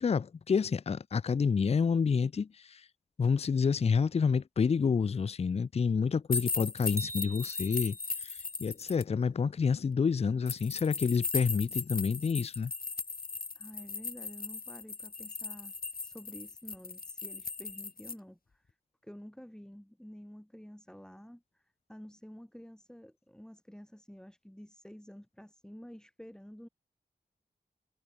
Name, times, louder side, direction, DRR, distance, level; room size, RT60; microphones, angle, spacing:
voice 1, 0.0-2.9 3.2-12.7, left 5 dB, 40° left, 0.4 m, -29 dB
sound 1, 6.3-9.0 10.5-18.1, left 4 dB, 65° left, 2.3 m, -38 dB
sound 2, 7.0-8.4, right 1 dB, 20° right, 4.9 m, -45 dB
voice 2, 13.5-15.7 16.0-18.7 19.0-26.7, equal, 5° left, 2.2 m, -50 dB
cardioid pair, 55°, 16 cm